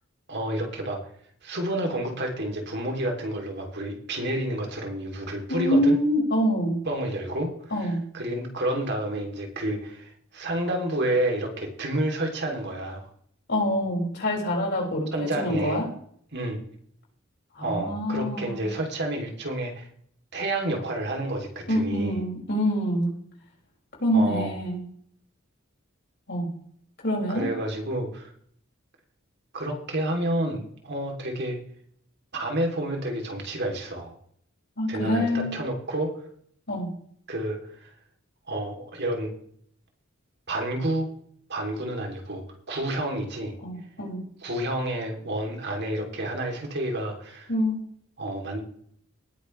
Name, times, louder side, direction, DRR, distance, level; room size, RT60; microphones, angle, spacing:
voice 1, 0.3-1.0 1.4-6.0 6.8-13.1 15.1-15.8 16.3-16.6 17.6-19.9 20.3-22.2 24.1-24.5 27.3-28.3 29.5-31.6 32.3-34.1 34.9-36.1 37.3-37.9 38.5-39.3 40.5-41.1 41.5-43.5 44.4-47.5 48.2-48.6, right 1 dB, 55° right, 2 dB, 3.1 m, -29 dB
voice 2, 5.5-6.8 7.7-8.0 13.5-15.9 17.6-18.6 21.7-23.1 24.0-24.8 26.3-26.5 27.0-27.5 34.8-35.5 36.7-36.9 43.6-44.2 47.5-47.8, equal, 55° left, -2 dB, 5.8 m, -25 dB
19.0 x 10.5 x 3.3 m, 0.63 s
head